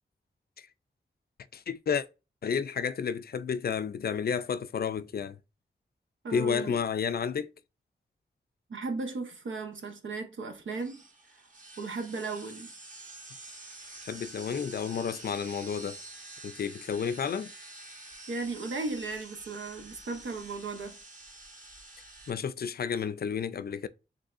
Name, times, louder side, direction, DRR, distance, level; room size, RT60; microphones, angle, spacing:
voice 1, 1.5-2.1 2.4-5.4 6.3-7.5 14.0-16.0 16.4-17.5 22.3-23.9, left 7 dB, 55° left, 0.4 m, -31 dB
voice 2, 6.2-6.8 8.7-11.0 11.8-12.7 18.3-21.0, right 3 dB, 85° right, 0.9 m, -36 dB
sound 1, 10.7-22.3, right 2 dB, 40° right, 1.2 m, -48 dB
5.3 x 3.3 x 2.5 m
cardioid pair, 55°, 19 cm